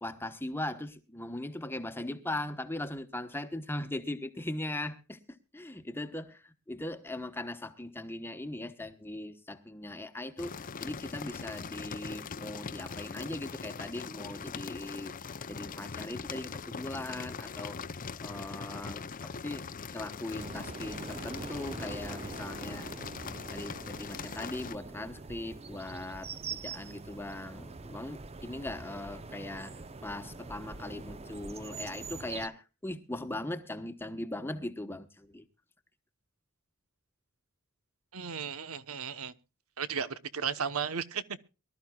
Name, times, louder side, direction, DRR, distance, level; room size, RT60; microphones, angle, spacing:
voice 1, 0.0-5.2 5.5-10.5 10.8-15.1 15.5-17.8 18.2-19.6 19.9-22.9 23.5-35.4, left 1 dB, 10° left, 1.1 m, -39 dB
sound 1, 10.4-24.8, left 5 dB, 40° left, 0.6 m, -41 dB
sound 2, 20.3-32.5, right 3 dB, 30° right, 0.7 m, -44 dB
voice 2, 38.1-39.3 39.8-41.4, right 7 dB, 85° right, 1.1 m, -35 dB
24.0 x 13.0 x 2.3 m
head